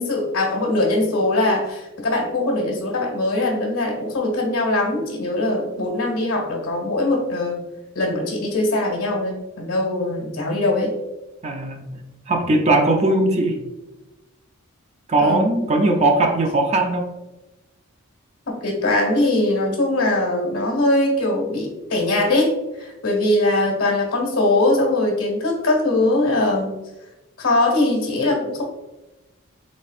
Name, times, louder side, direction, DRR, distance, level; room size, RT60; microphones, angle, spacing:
voice 1, 0.0-7.6 7.9-11.0 15.2-15.6 18.4-22.5 22.8-26.7 27.4-28.6, left 2 dB, 75° left, -1 dB, 1.4 m, -21 dB
voice 2, 11.4-11.9 12.3-13.6 15.1-17.1, right 2 dB, 30° right, 3 dB, 0.4 m, -19 dB
4.2 x 3.6 x 2.4 m, 1.0 s
head